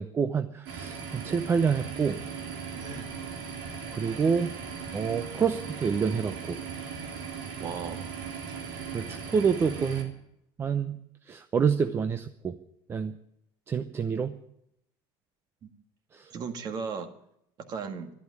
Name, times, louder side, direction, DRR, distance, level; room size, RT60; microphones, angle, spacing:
voice 1, 0.0-2.2 3.9-4.5 4.9-6.6 8.9-10.1 10.6-11.0 11.3-12.6 12.9-13.1 13.7-14.4 16.1-16.3, right 6 dB, 25° right, 9 dB, 0.7 m, -27 dB
sound 1, 0.7-10.0, right 6 dB, 90° right, 3.4 m, -38 dB
voice 2, 2.7-3.1 7.6-8.0 15.6-15.7 16.3-17.1 17.7-18.1, right 5 dB, 40° right, 7 dB, 1.8 m, -36 dB
12.0 x 11.5 x 9.6 m, 0.79 s
cardioid pair, 140°, 11 cm